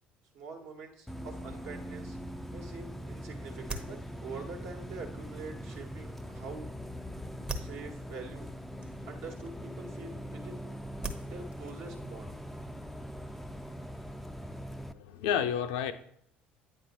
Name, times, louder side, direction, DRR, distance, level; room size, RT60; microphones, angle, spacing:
voice 1, 0.3-2.2 2.5-6.7 7.6-8.5 9.0-10.8 11.2-12.3, right 4 dB, 55° right, 2 dB, 1.3 m, -45 dB
Bus, 1.1-14.9, equal, ahead, 0.4 m, -42 dB
sound 1, 2.5-12.9, right 2 dB, 20° right, 0.8 m, -47 dB
voice 2, 14.9-15.9, left 9 dB, 60° left, 9 dB, 0.5 m, -30 dB
8.9 x 3.6 x 3.0 m, 0.68 s
figure-of-eight pair, 55°, 5 cm